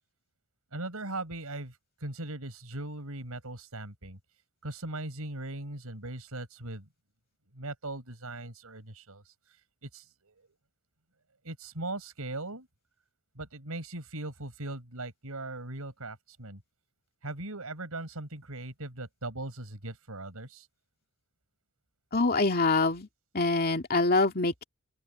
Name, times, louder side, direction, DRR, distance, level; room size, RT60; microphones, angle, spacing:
voice 1, 0.7-1.7 2.0-4.2 4.6-6.9 7.5-9.2 9.8-10.5 11.4-12.7 13.3-16.6 17.2-20.7, right 2 dB, 80° right, 4.8 m, -39 dB
voice 2, 22.1-23.1 23.3-24.6, left 3 dB, 45° left, 2.5 m, -25 dB
open air
head